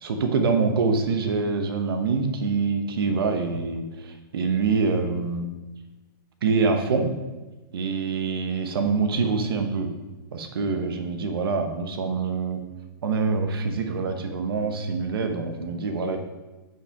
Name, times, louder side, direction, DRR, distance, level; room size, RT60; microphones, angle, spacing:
voice 1, 0.0-5.5 6.4-7.2 7.7-9.9 10.3-12.6 13.0-16.2, right 4 dB, 70° right, 6 dB, 1.2 m, -25 dB
10.5 x 5.8 x 3.7 m, 1.1 s
hypercardioid pair, 160°, 13 cm